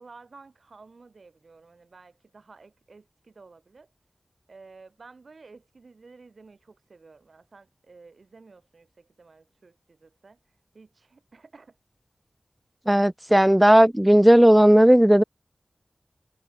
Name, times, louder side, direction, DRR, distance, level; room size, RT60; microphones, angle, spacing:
voice 1, 0.0-3.9 4.5-10.4 10.7-11.8, right 4 dB, 80° right, 7.5 m, -52 dB
voice 2, 12.9-15.2, equal, 10° right, 0.4 m, -15 dB
wide cardioid pair, 60°, 0 cm